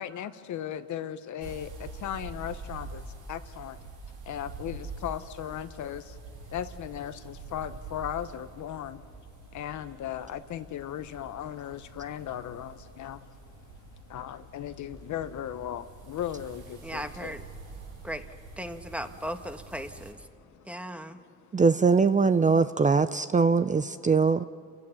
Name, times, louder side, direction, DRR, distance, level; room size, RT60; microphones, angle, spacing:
voice 1, 0.0-17.3 17.7-18.1 20.4-21.6, left 10 dB, 70° left, 11 dB, 1.1 m, -38 dB
sound 1, 1.4-20.1, right 4 dB, 85° right, 3.7 m, -46 dB
voice 2, 16.8-17.4 18.0-18.3 18.6-20.2 20.6-21.2, equal, 5° right, 7 dB, 1.4 m, -37 dB
voice 3, 21.5-24.4, right 4 dB, 25° right, 12 dB, 0.6 m, -22 dB
29.5 x 16.0 x 7.1 m, 2.6 s
cardioid pair, 90°, 30 cm